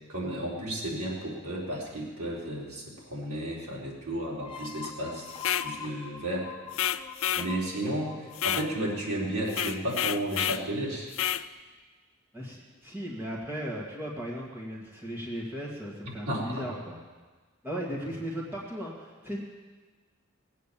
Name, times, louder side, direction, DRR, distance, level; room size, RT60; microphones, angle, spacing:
voice 1, 0.1-2.8 3.1-5.3 5.6-6.5 7.3-11.1 16.3-16.6, right 1 dB, 80° right, -5 dB, 4.5 m, -33 dB
sound 1, 4.4-9.9, left 7 dB, 20° left, 0.8 m, -44 dB
sound 2, 5.3-5.7 6.7-7.5 8.4-8.7 9.5-10.6 11.1-11.5, left 10 dB, 65° left, 0.5 m, -29 dB
voice 2, 12.3-17.0 17.6-19.4, equal, 10° right, -4 dB, 1.9 m, -36 dB
20.0 x 8.5 x 7.4 m, 1.4 s
head